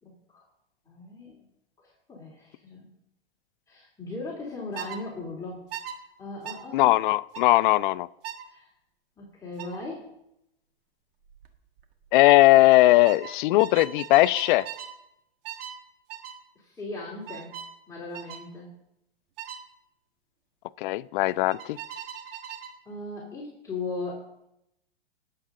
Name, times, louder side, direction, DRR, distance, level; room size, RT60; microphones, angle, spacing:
voice 1, 0.0-0.4 0.9-1.5 1.8-2.9 3.7-5.6 6.2-7.0 7.5-7.6 8.5-8.7 9.2-10.1 16.5-17.5 17.9-18.7 22.8-24.3, left 3 dB, 10° left, -6 dB, 2.9 m, -38 dB
sound 1, 4.7-5.0 5.7-6.0 6.4-6.6 7.3-7.5 8.2-8.5 9.6-9.8 11.2-11.5 11.8-12.1 13.0-15.0 15.4-15.8 16.1-16.4 17.3-17.7 18.1-18.4 19.4-19.6 21.5-22.8, right 9 dB, 60° right, 1.7 m, -39 dB
voice 2, 6.7-8.1 12.1-14.7 20.8-21.8, left 18 dB, 55° left, 17 dB, 0.5 m, -19 dB
19.5 x 7.7 x 3.8 m, 0.83 s
hypercardioid pair, 125°, 31 cm